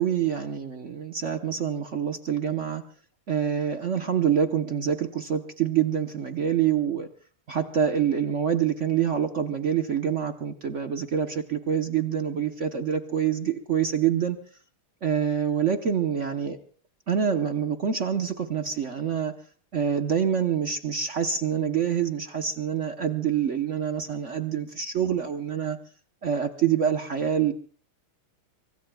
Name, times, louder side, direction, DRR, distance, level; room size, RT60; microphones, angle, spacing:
voice 1, 0.0-2.8 3.3-7.1 7.5-14.4 15.0-16.6 17.1-19.3 19.7-25.8 26.2-27.5, right 8 dB, 50° right, 7 dB, 0.9 m, -26 dB
24.5 x 24.0 x 2.3 m, 0.43 s
omnidirectional pair, 2.4 m